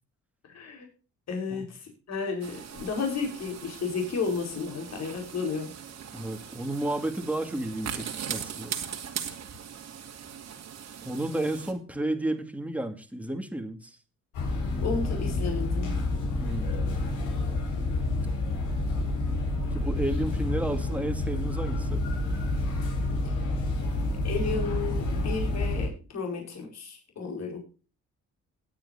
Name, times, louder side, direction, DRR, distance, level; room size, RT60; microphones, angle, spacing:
voice 1, 0.4-0.9 1.3-5.7 14.8-15.9 23.2-23.3 24.2-27.6, left 5 dB, 60° left, 3 dB, 4.7 m, -32 dB
sound 1, 2.4-11.7, right 8 dB, 60° right, 2.4 m, -40 dB
voice 2, 6.1-8.7 11.0-14.0 16.4-16.7 19.6-22.0, right 1 dB, 5° right, 6 dB, 2.3 m, -32 dB
sound 2, 14.3-25.9, left 2 dB, 80° left, 5.4 m, -29 dB
18.5 x 9.1 x 2.7 m, 0.34 s
cardioid pair, 90°, 30 cm